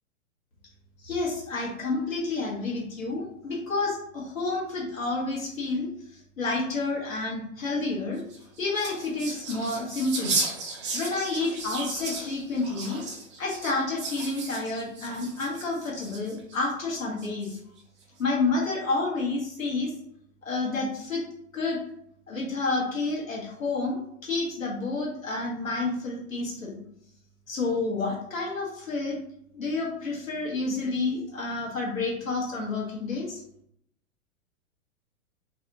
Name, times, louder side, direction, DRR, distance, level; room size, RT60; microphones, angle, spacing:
voice 1, 1.0-5.9 6.4-8.2 8.6-10.4 10.9-13.0 13.4-17.5 18.2-19.9 20.4-21.2 21.5-21.8 22.3-26.8 27.5-29.2 29.5-33.4, left 3 dB, 75° left, -3 dB, 1.3 m, -29 dB
sound 1, 8.2-16.6 17.2-17.8, right 3 dB, 25° right, 0.3 m, -35 dB
2.7 x 2.4 x 2.6 m, 0.72 s
figure-of-eight pair, 105°, 41 cm